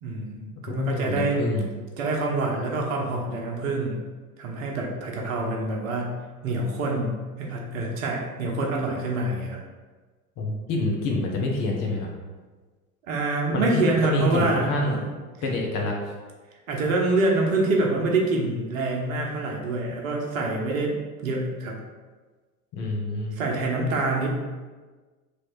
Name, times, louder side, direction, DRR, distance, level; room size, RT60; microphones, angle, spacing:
voice 1, 0.0-1.4 2.0-4.0 4.4-6.2 6.4-9.6 13.1-15.1 16.7-20.9 21.2-21.8 23.3-24.3, right 2 dB, 60° right, 0 dB, 1.0 m, -26 dB
voice 2, 0.7-1.7 10.4-12.1 13.5-15.0 15.4-15.9 22.7-23.3, left 2 dB, 40° left, -1 dB, 1.1 m, -26 dB
3.2 x 3.1 x 4.4 m, 1.3 s
figure-of-eight pair, 80°, 45 cm